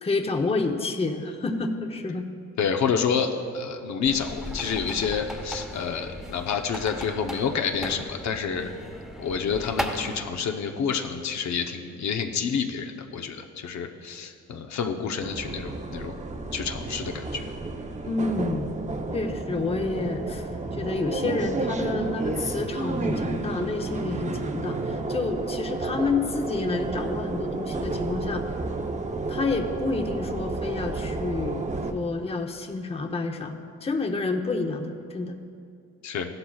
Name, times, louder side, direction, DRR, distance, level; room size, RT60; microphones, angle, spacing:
voice 1, 0.0-2.3 18.0-18.7 19.1-28.5 29.3-35.4, left 3 dB, 20° left, 5 dB, 0.8 m, -29 dB
voice 2, 2.6-8.7 9.2-16.2 16.5-17.4 36.0-36.3, left 6 dB, 65° left, 4 dB, 0.8 m, -28 dB
sound 1, 4.0-10.2, equal, ahead, 1.0 m, -36 dB
sound 2, 15.2-31.9, right 3 dB, 25° right, 0.7 m, -31 dB
15.5 x 11.5 x 2.3 m, 2.4 s
cardioid pair, 90°, 30 cm